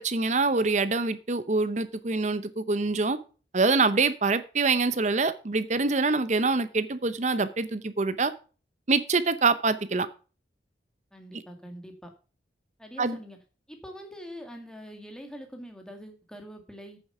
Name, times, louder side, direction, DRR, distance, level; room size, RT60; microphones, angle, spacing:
voice 1, 0.0-3.2 3.5-8.3 8.9-10.1 13.0-13.2, right 3 dB, 40° right, 13 dB, 0.8 m, -25 dB
voice 2, 11.1-12.1 12.8-13.4 13.7-17.0, equal, 5° left, 4 dB, 1.9 m, -44 dB
8.7 x 7.3 x 5.6 m, 0.36 s
head